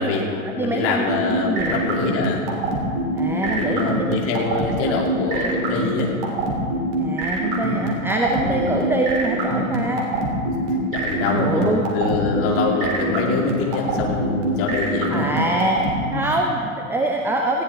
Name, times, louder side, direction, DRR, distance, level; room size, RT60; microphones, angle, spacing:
voice 1, 0.0-2.4 3.4-6.1 8.4-8.7 10.5-10.6 10.9-15.3 16.1-16.3, left 4 dB, 30° left, -1 dB, 2.9 m, -25 dB
voice 2, 0.6-1.8 3.2-4.1 4.7-5.0 5.4-5.5 7.0-10.1 11.3-11.8 15.1-17.6, right 2 dB, 5° right, 2 dB, 0.6 m, -24 dB
sound 1, 1.1-15.9, right 3 dB, 40° right, 3.1 m, -24 dB
19.5 x 15.0 x 3.6 m, 2.6 s
figure-of-eight pair, 105°, 42 cm